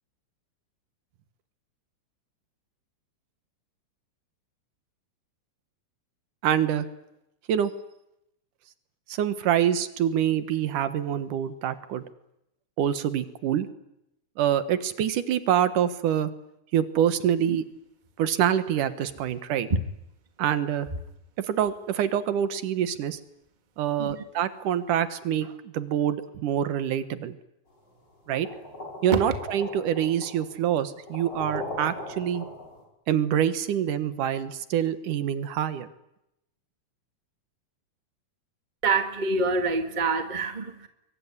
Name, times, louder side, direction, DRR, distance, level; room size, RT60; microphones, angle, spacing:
voice 1, 6.4-6.9 7.5-7.7 9.1-12.0 12.8-13.7 14.4-16.3 16.7-17.6 18.2-19.7 20.4-20.9 21.4-23.2 23.8-27.4 28.3-28.5 29.0-32.5 33.1-35.9, right 10 dB, 80° right, 12 dB, 3.0 m, -26 dB
sound 1, 28.3-32.8, left 1 dB, 30° left, 6.6 m, -39 dB
voice 2, 38.8-40.9, right 4 dB, 15° right, 7 dB, 1.7 m, -26 dB
24.0 x 23.5 x 9.8 m, 0.83 s
omnidirectional pair, 3.6 m